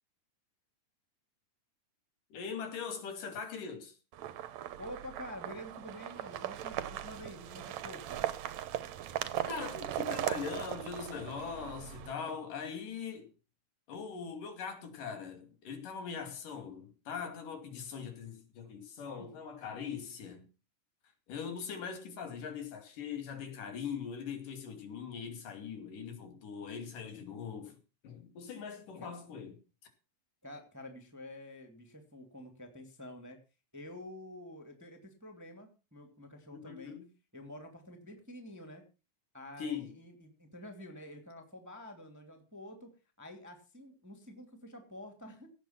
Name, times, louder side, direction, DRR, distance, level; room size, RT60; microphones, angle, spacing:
voice 1, 2.3-4.0 9.5-13.3 13.9-20.5 21.3-27.8 28.0-29.5 36.5-37.1 39.6-39.9, left 6 dB, 70° left, 4.1 m, -41 dB
sound 1, 4.1-12.1, right 12 dB, 65° right, 2.0 m, -38 dB
voice 2, 4.8-8.2 19.2-19.3 29.0-29.1 30.4-33.4 33.7-37.0 37.3-38.8 39.3-45.5, left 1 dB, 5° right, 1.9 m, -48 dB
17.0 x 8.1 x 5.9 m
omnidirectional pair, 3.9 m